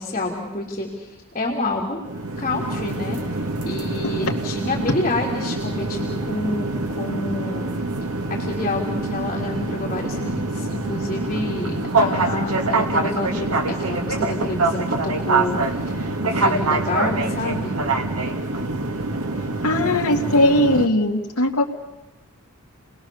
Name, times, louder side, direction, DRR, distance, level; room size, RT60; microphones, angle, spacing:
voice 1, 0.0-2.0 2.4-3.2 3.6-7.7 8.3-17.8, left 2 dB, 30° left, -2 dB, 3.4 m, -28 dB
sound 1, 2.0-20.9, right 2 dB, 80° right, 2.2 m, -25 dB
voice 2, 19.6-21.7, left 1 dB, 80° left, 0 dB, 2.2 m, -19 dB
30.0 x 20.5 x 7.1 m, 1.1 s
head